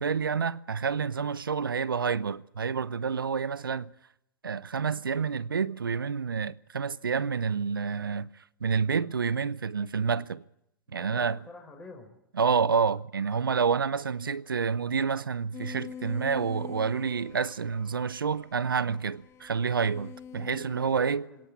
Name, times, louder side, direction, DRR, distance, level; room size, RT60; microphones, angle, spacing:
voice 1, 0.0-3.9 4.4-8.3 8.6-10.4 10.9-11.4 12.4-21.3, right 6 dB, 90° right, 0.7 m, -28 dB
voice 2, 10.9-12.2 20.7-21.5, left 3 dB, 5° left, 5.0 m, -48 dB
sound 1, 15.5-20.9, left 7 dB, 25° left, 1.0 m, -45 dB
21.5 x 18.0 x 8.7 m
hypercardioid pair, 120°, 11 cm